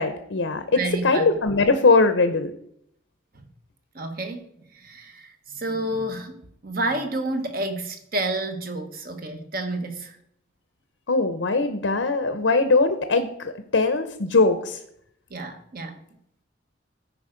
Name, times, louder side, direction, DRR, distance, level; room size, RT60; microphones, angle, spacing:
voice 1, 0.0-2.5 11.1-14.8, left 3 dB, 85° left, 9 dB, 0.7 m, -21 dB
voice 2, 0.7-1.4 3.9-10.2 15.3-16.0, right 2 dB, 50° right, 7 dB, 1.2 m, -30 dB
13.5 x 5.0 x 5.1 m, 0.72 s
head